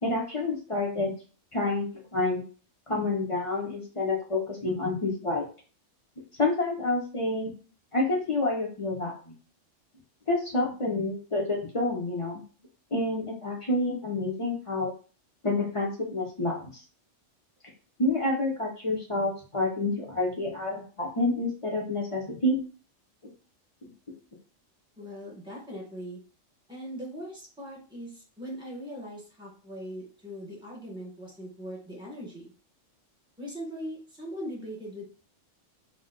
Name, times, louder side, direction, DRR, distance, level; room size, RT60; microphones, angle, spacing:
voice 1, 0.0-1.1 1.5-2.4 2.9-5.4 6.4-7.5 7.9-9.1 10.3-12.4 12.9-14.9 15.4-16.7 18.0-22.6, left 2 dB, 35° left, -2 dB, 0.5 m, -28 dB
voice 2, 25.0-26.2 26.7-32.5 33.4-35.0, equal, 5° right, -4 dB, 1.1 m, -40 dB
2.5 x 2.1 x 3.6 m, 0.38 s
omnidirectional pair, 1.3 m